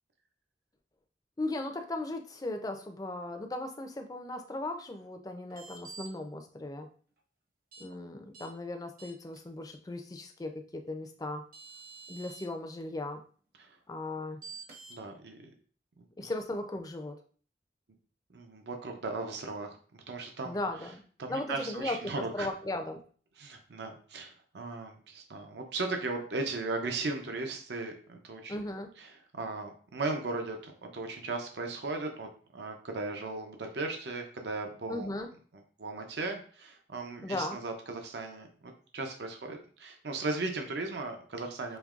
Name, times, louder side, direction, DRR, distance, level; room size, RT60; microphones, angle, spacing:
voice 1, 1.4-6.9 7.8-11.4 12.1-13.2 13.9-14.4 16.2-17.2 20.4-21.0 21.3-23.0 28.5-28.9 34.9-35.3 37.2-37.6, left 2 dB, 20° left, 6 dB, 0.4 m, -37 dB
sound 1, 5.5-6.1 7.7-7.8 8.3-8.5 9.0-9.4 11.0-11.1 11.5-12.5 14.4-15.0, right 4 dB, 55° right, 0.9 m, -47 dB
voice 2, 14.9-15.4 18.3-20.6 21.2-22.5 23.4-28.5 29.0-35.1 35.8-41.8, right 3 dB, 75° right, 4 dB, 0.6 m, -37 dB
5.2 x 3.0 x 2.4 m, 0.43 s
head